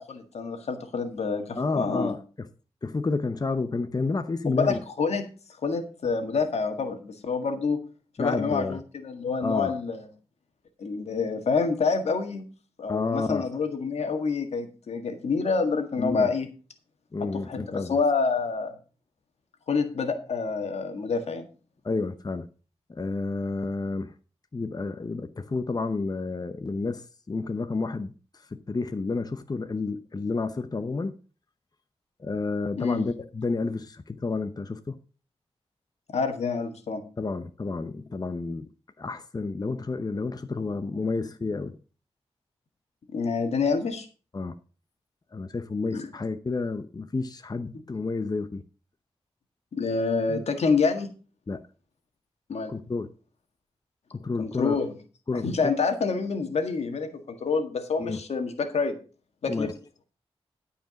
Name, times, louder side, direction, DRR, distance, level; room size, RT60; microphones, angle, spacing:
voice 1, 0.0-2.2 4.5-5.2 5.6-7.8 8.2-10.1 10.8-12.4 12.8-16.5 17.2-18.7 19.7-21.5 32.8-33.0 36.1-37.0 43.1-44.1 45.9-46.1 49.7-51.1 52.5-52.7 54.4-54.9 55.4-59.0 59.4-59.7, left 4 dB, 80° left, 1.7 m, -27 dB
voice 2, 1.5-2.5 2.8-4.8 8.2-8.8 9.4-9.7 12.9-13.4 16.0-16.3 17.1-18.0 21.8-22.5 22.9-24.1 24.5-28.1 28.5-31.1 32.2-35.0 37.2-38.7 39.0-41.8 44.3-44.5 45.3-48.6 51.5-51.6 52.7-53.1 54.1-54.8 55.3-55.5 58.0-58.2 59.5-59.7, left 3 dB, 35° left, 0.8 m, -30 dB
12.5 x 5.0 x 6.4 m
cardioid pair, 55°, 11 cm